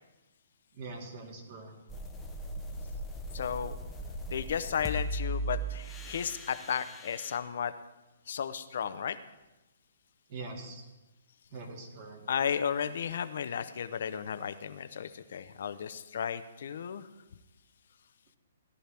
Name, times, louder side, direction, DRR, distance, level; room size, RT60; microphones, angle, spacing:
voice 1, 0.7-1.7 10.3-10.8 11.5-12.2, right 3 dB, 40° right, 2 dB, 2.1 m, -43 dB
sound 1, 1.9-7.4, right 1 dB, 5° left, 0.9 m, -38 dB
voice 2, 3.3-3.7 4.3-7.7 8.3-9.2 12.3-17.1, left 8 dB, 60° left, 12 dB, 0.8 m, -34 dB
17.0 x 11.0 x 3.4 m, 1.0 s
hypercardioid pair, 160°, 0 cm